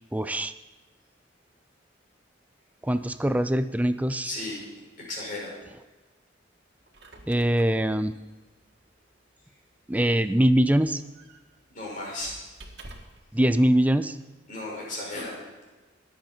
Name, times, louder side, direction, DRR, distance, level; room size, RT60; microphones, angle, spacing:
voice 1, 0.1-0.5 2.8-4.3 7.3-8.1 9.9-11.0 13.3-14.2, right 1 dB, 10° right, 12 dB, 0.5 m, -23 dB
voice 2, 4.2-4.6 5.1-5.6 11.7-12.4 14.5-15.4, left 2 dB, 45° left, -4 dB, 5.7 m, -34 dB
Squeak, 6.7-13.3, right 2 dB, 60° right, 1.9 m, -50 dB
21.5 x 8.0 x 4.5 m, 1.2 s
head